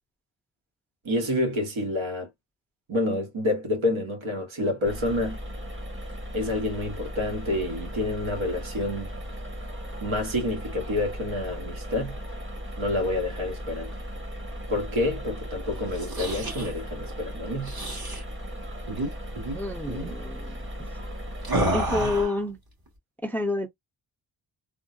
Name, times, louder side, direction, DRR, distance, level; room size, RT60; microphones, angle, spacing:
voice 1, 1.0-2.3 2.9-5.4 6.3-9.1 10.0-12.2 12.8-13.9 14.7-17.7, left 1 dB, 70° right, 1.6 m, -28 dB
sound 1, 4.8-22.3, equal, 25° right, 1.3 m, -37 dB
sound 2, 15.9-16.7 17.6-18.2 18.9-19.1 19.3-19.6 19.9-20.1 21.4-22.4, right 1 dB, 45° right, 2.3 m, -29 dB
voice 2, 19.5-20.5 21.7-22.6 23.2-23.7, left 2 dB, 5° left, 0.5 m, -28 dB
3.6 x 2.3 x 2.6 m
cardioid pair, 85°, 49 cm